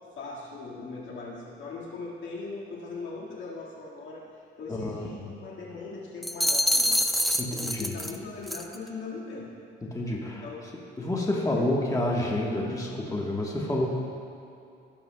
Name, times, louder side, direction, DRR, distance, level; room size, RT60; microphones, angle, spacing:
voice 1, 0.2-7.0 7.4-9.5 10.4-10.7 11.6-11.7, left 3 dB, 70° left, -4 dB, 1.8 m, -40 dB
voice 2, 4.7-5.0 7.4-7.9 9.9-10.4 11.0-13.9, left 1 dB, 15° left, -2 dB, 1.3 m, -28 dB
sound 1, 6.2-8.2 8.5-8.8, equal, ahead, 0.4 m, -26 dB
17.0 x 6.9 x 2.3 m, 2.6 s
cardioid pair, 90°, 20 cm